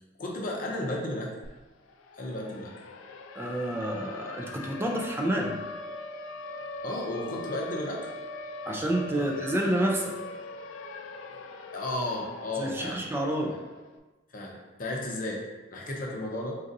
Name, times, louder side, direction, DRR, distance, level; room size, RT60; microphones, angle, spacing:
voice 1, 0.2-1.3 2.1-2.7 6.8-8.1 9.2-9.3 11.7-13.0 13.4-13.6 14.3-15.4 15.7-16.6, left 1 dB, 45° left, -1 dB, 0.7 m, -33 dB
Siren, 1.4-1.5 1.8-13.9, left 2 dB, 90° left, 0.4 m, -41 dB
voice 2, 3.4-5.6 8.7-10.1 12.6-13.6, right 1 dB, 10° right, 0 dB, 0.4 m, -29 dB
4.0 x 3.9 x 2.6 m, 1.2 s
head